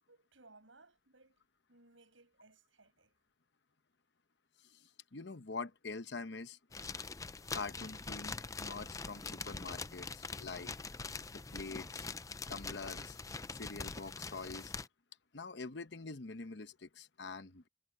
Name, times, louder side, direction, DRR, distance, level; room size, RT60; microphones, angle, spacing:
voice 1, 0.1-1.4 1.7-3.1, right 3 dB, 75° right, 7.2 m, -63 dB
voice 2, 4.6-6.6 7.5-10.7 11.3-12.1 12.5-13.2 13.5-14.7 15.3-17.7, left 4 dB, 60° left, 0.9 m, -45 dB
sound 1, 6.7-14.9, left 4 dB, 15° left, 0.4 m, -44 dB
head